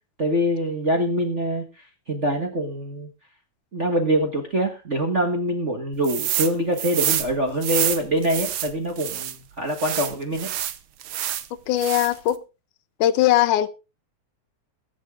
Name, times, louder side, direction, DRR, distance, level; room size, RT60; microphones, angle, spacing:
voice 1, 0.2-1.6 2.1-3.1 3.7-10.5, equal, 35° right, 1.2 m, -24 dB
sound 1, 6.0-6.5 6.8-9.4 9.7-11.5 11.8-12.3, right 11 dB, 70° right, 1.3 m, -27 dB
voice 2, 11.7-12.4 13.0-13.7, left 13 dB, 90° left, 2.4 m, -19 dB
22.0 x 7.4 x 3.7 m
omnidirectional pair, 3.5 m